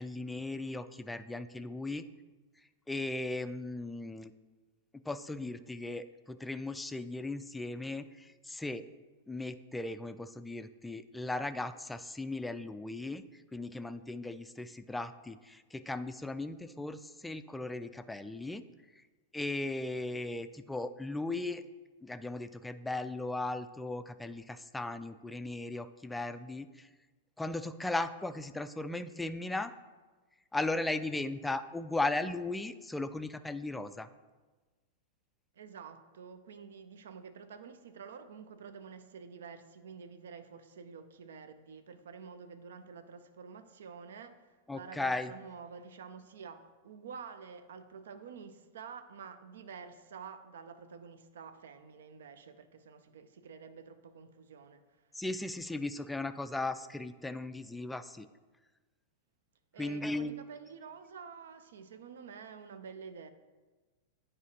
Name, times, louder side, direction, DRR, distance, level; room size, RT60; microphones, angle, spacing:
voice 1, 0.0-2.0 2.9-4.3 4.9-8.8 9.3-18.6 19.3-21.6 22.0-26.9 27.4-29.7 30.5-34.1 44.7-45.3 55.1-58.3 59.8-60.3, left 2 dB, 5° left, 11 dB, 0.3 m, -37 dB
voice 2, 35.5-54.8 59.7-63.3, right 6 dB, 65° right, 10 dB, 0.5 m, -49 dB
9.5 x 4.9 x 2.9 m, 1.3 s
figure-of-eight pair, 95°, 0 cm